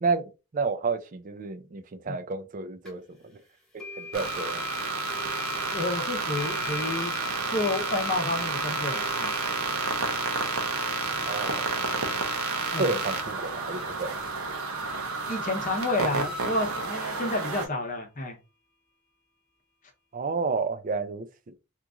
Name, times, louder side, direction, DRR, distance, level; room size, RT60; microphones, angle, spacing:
voice 1, 0.0-3.0 4.0-4.6 11.2-12.1 12.8-14.2 20.1-21.5, right 4 dB, 40° right, 0.4 m, -31 dB
sound 1, 2.8-2.9 3.8-14.8, left 3 dB, 5° left, 1.0 m, -44 dB
sound 2, 4.1-17.7, right 3 dB, 90° right, 0.8 m, -30 dB
voice 2, 5.7-7.1 7.5-9.4 12.7-12.9 15.3-18.4, left 2 dB, 35° left, 0.7 m, -30 dB
2.9 x 2.5 x 3.5 m
head